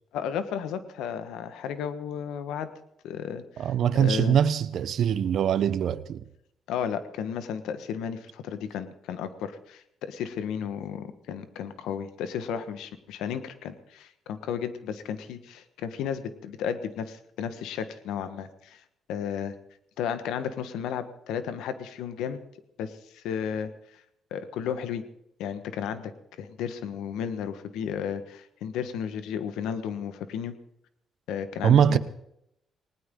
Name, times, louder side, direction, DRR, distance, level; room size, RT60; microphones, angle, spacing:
voice 1, 0.1-2.7 3.0-3.7 4.0-4.4 6.7-18.8 19.1-19.5 20.0-22.4 22.8-24.0 24.3-25.0 25.4-30.5 31.3-32.0, left 8 dB, 90° left, 1.4 m, -33 dB
voice 2, 3.6-6.2 31.6-32.0, right 9 dB, 70° right, 0.9 m, -22 dB
19.5 x 19.0 x 3.8 m
cardioid pair, 90°, 0 cm